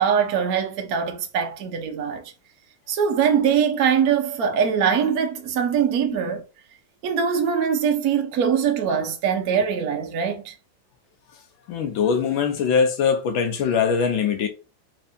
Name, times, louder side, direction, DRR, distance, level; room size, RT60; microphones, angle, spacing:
voice 1, 0.0-2.2 2.9-6.4 7.0-10.5, right 7 dB, 55° right, 1.1 m, -22 dB
voice 2, 11.7-14.5, left 6 dB, 80° left, 1.6 m, -22 dB
4.4 x 3.3 x 2.6 m
omnidirectional pair, 2.2 m